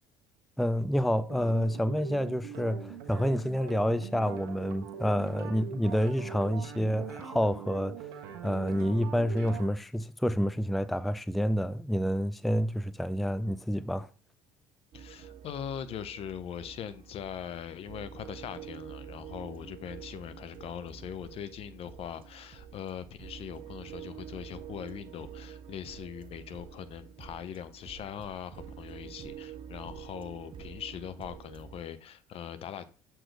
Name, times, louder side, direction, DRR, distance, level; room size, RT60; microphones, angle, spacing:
voice 1, 0.6-7.9 8.4-14.1, equal, ahead, 0.4 m, -28 dB
sound 1, 1.3-9.7, right 8 dB, 75° right, 1.3 m, -42 dB
voice 2, 14.9-32.9, left 9 dB, 55° left, 0.8 m, -41 dB
sound 2, 14.9-31.8, right 9 dB, 45° right, 0.7 m, -47 dB
7.5 x 4.5 x 3.3 m
hypercardioid pair, 70°, 12 cm